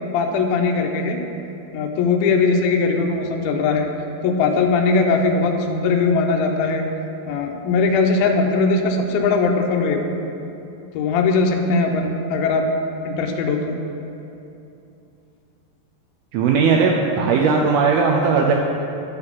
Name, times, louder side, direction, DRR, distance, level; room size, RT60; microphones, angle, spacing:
voice 1, 0.1-1.2 1.7-3.9 4.2-6.8 7.3-10.1 10.9-12.6 13.0-13.8, left 4 dB, 85° left, 2 dB, 2.1 m, -20 dB
voice 2, 16.3-18.5, right 5 dB, 90° right, 0 dB, 2.2 m, -17 dB
10.5 x 4.0 x 7.2 m, 2.7 s
omnidirectional pair, 5.0 m